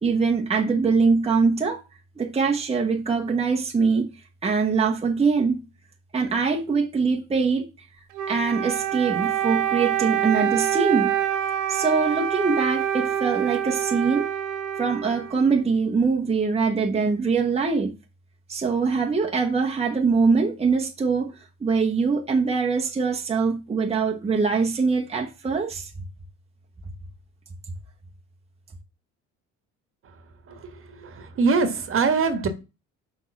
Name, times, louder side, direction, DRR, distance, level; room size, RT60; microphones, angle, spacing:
voice 1, 0.0-1.8 2.2-4.1 4.4-5.6 6.1-7.7 8.3-11.2 11.7-14.3 14.8-17.9 18.5-25.9, right 4 dB, 20° right, 1.1 m, -23 dB
Wind instrument woodwind instrument, 8.1-15.7, right 10 dB, 90° right, 1.7 m, -26 dB
voice 2, 31.0-32.5, right 4 dB, 45° right, 1.5 m, -22 dB
6.2 x 3.6 x 5.9 m
cardioid pair, 100°, 30 cm